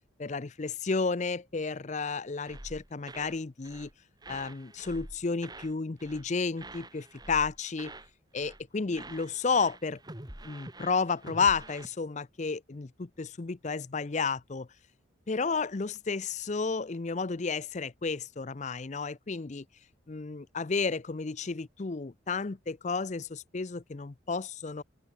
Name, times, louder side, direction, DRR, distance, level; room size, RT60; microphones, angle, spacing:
voice 1, 0.2-3.9 4.3-7.9 8.3-10.0 10.4-14.7 15.3-19.6 20.1-24.8, left 4 dB, 35° left, 0.5 m, -32 dB
sound 1, 2.4-3.9 4.2-5.7 6.0-6.3 6.6-8.1 8.3-8.6 8.9-11.9, right 2 dB, 20° right, 3.5 m, -47 dB
open air
head